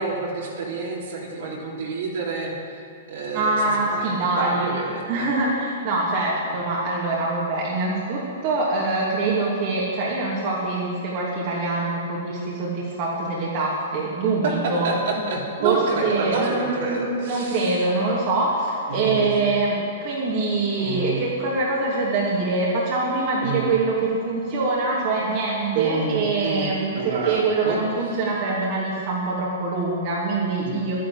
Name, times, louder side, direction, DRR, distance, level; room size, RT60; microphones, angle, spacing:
voice 1, 0.0-2.5 3.1-5.3 14.4-17.8 18.9-19.4 20.8-21.2 23.4-23.7 25.7-27.8 28.1-28.3 30.6-31.0, right 3 dB, 65° right, -3 dB, 3.5 m, -28 dB
voice 2, 3.3-4.7 5.1-14.9 15.6-31.0, right 3 dB, 45° right, -5 dB, 2.7 m, -24 dB
12.0 x 10.5 x 7.8 m, 2.5 s
hypercardioid pair, 115°, 0 cm